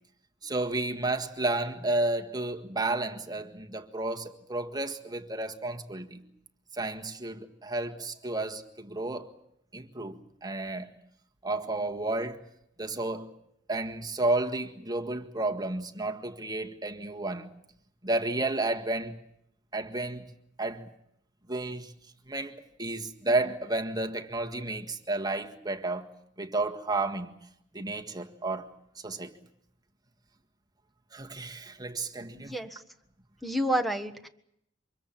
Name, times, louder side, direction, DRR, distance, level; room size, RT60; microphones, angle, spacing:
voice 1, 0.4-6.2 6.7-9.3 9.7-10.9 11.4-12.4 12.8-13.3 13.7-17.5 18.0-19.1 19.7-20.2 20.6-20.9 21.5-21.9 22.3-26.1 26.4-27.3 27.7-28.7 29.0-29.3 31.1-32.5, right 2 dB, 20° right, 1.7 m, -32 dB
voice 2, 32.3-32.8 33.4-34.3, right 1 dB, ahead, 1.4 m, -30 dB
25.5 x 21.5 x 7.4 m
head